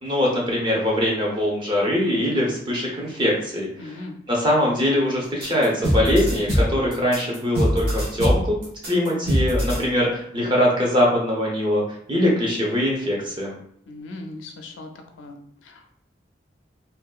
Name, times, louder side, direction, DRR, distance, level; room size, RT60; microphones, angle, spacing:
voice 1, 0.0-3.9 4.3-8.6 8.9-11.8 12.1-13.5, left 1 dB, 25° right, -3 dB, 0.6 m, -22 dB
voice 2, 3.8-4.2 13.9-14.9 15.2-15.9, left 2 dB, 80° left, 4 dB, 0.4 m, -39 dB
sound 1, 5.4-9.8, equal, 55° right, 0.8 m, -22 dB
2.6 x 2.2 x 2.3 m, 0.68 s
head